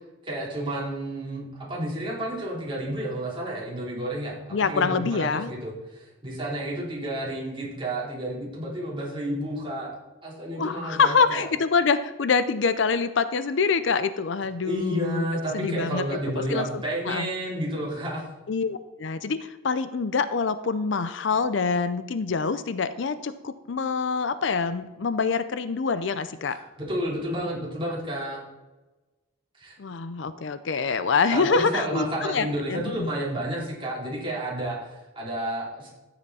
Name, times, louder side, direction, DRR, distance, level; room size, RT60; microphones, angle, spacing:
voice 1, 0.3-9.9 10.2-11.5 14.6-18.2 26.8-28.4 29.6-29.8 31.3-35.9, right 1 dB, 25° right, -5 dB, 3.6 m, -31 dB
voice 2, 4.5-5.5 10.5-15.3 15.5-16.0 16.5-17.3 18.5-26.6 29.8-33.1, left 5 dB, 60° left, 13 dB, 0.5 m, -25 dB
14.0 x 7.8 x 4.2 m, 1.1 s
head